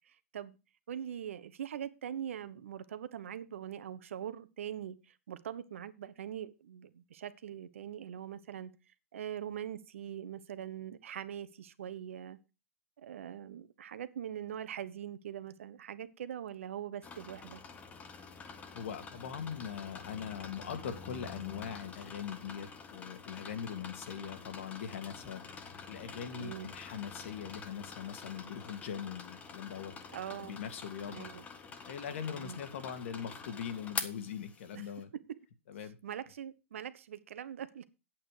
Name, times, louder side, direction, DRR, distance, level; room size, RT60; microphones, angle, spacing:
voice 1, 0.1-0.6 0.9-8.7 9.1-12.4 13.0-17.6 26.4-26.7 30.1-30.6 31.1-31.5 32.3-32.6 34.7-34.9 36.0-37.8, right 9 dB, 75° right, 1.1 m, -42 dB
sound 1, 17.0-35.0, left 5 dB, 20° left, 1.5 m, -47 dB
voice 2, 18.3-29.9 30.4-31.3 31.9-35.1 35.7-36.0, left 8 dB, 70° left, 2.2 m, -41 dB
9.1 x 8.6 x 5.0 m
hypercardioid pair, 135°, 7 cm